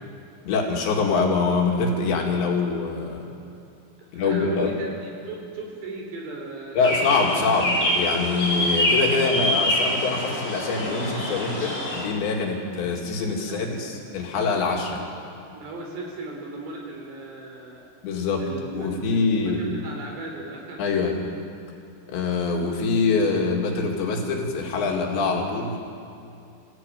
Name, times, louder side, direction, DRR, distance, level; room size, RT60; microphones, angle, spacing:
voice 1, 0.4-3.3 4.1-4.7 6.8-15.0 18.0-18.5 18.7-19.6 20.8-21.2 22.1-25.8, left 4 dB, 70° left, 0 dB, 4.6 m, -24 dB
voice 2, 4.0-4.9 5.2-7.4 7.8-7.9 13.5-14.1 14.8-15.0 15.5-17.8 18.4-20.8, right 2 dB, 65° right, 0 dB, 6.2 m, -37 dB
sound 1, 6.8-12.0, left 1 dB, 30° left, 5.7 m, -25 dB
26.5 x 15.5 x 9.2 m, 2.6 s
omnidirectional pair, 5.3 m